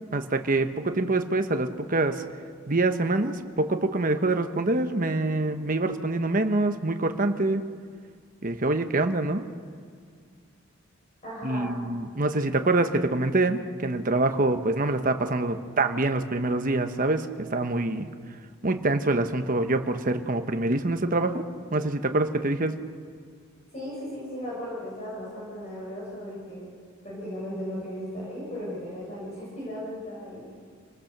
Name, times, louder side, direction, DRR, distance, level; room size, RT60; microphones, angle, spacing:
voice 1, 0.1-2.2 2.7-7.6 8.4-9.4 11.4-18.1 18.6-21.4 21.7-22.8, right 2 dB, 40° right, 7 dB, 1.1 m, -25 dB
voice 2, 11.2-11.7 23.7-26.7 27.0-30.5, equal, 30° left, -7 dB, 7.4 m, -36 dB
27.0 x 19.5 x 6.8 m, 2.1 s
head